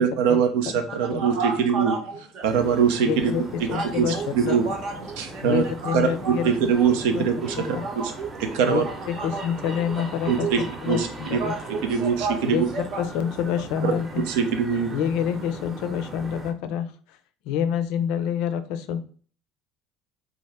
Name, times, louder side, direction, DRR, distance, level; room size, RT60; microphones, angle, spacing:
voice 1, 0.0-1.9 2.4-3.3 4.0-4.6 5.2-5.6 5.9-6.1 6.4-7.8 8.5-8.8 10.3-10.6 10.9-11.4 11.9-12.7 13.8-13.9 14.3-14.9, right 7 dB, 90° right, 6 dB, 0.6 m, -22 dB
voice 2, 1.2-2.4 3.7-6.5 7.8-9.4 10.3-10.6 11.4-12.4 12.7-13.0 13.8-13.9, right 4 dB, 60° right, 3 dB, 0.9 m, -32 dB
sound 1, 2.4-16.5, right 1 dB, 25° right, 0.8 m, -39 dB
voice 3, 3.1-3.4 3.7-4.6 5.4-6.5 7.1-7.2 7.5-7.8 8.6-11.5 12.4-14.2 14.9-17.2 17.4-19.0, left 8 dB, 75° left, 11 dB, 0.4 m, -27 dB
2.7 x 2.3 x 3.2 m, 0.42 s
cardioid pair, 125°, 0 cm